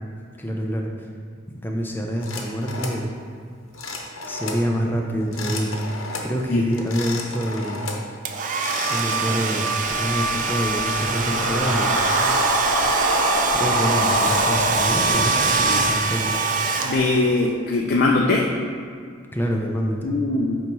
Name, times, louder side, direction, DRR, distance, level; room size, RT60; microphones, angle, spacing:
voice 1, 0.4-0.9 1.6-3.1 4.3-5.7 6.2-7.8 8.9-12.0 13.5-16.4 19.3-20.1, equal, 10° left, 0 dB, 0.6 m, -26 dB
sound 1, 2.2-3.0 3.7-4.7 5.2-6.3 6.7-8.1 8.5-9.3, left 3 dB, 85° left, 0.9 m, -33 dB
Domestic sounds home sounds, 8.2-17.4, right 4 dB, 40° right, 0.4 m, -24 dB
sound 2, 10.8-16.0, equal, 70° right, 1.1 m, -24 dB
voice 2, 16.8-18.5 20.0-20.6, left 2 dB, 50° left, -1 dB, 0.5 m, -21 dB
8.9 x 3.1 x 4.7 m, 2.1 s
head